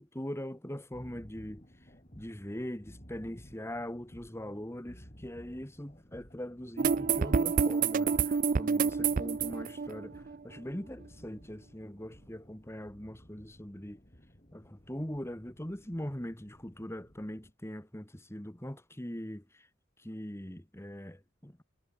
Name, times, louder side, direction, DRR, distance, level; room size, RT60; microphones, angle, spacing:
voice 1, 0.0-1.7 2.2-14.0 14.5-19.6 20.0-21.6, equal, 15° left, 1.8 m, -41 dB
sound 1, 0.9-17.5, equal, 30° left, 4.8 m, -56 dB
sound 2, 6.8-10.6, right 5 dB, 40° right, 0.4 m, -28 dB
head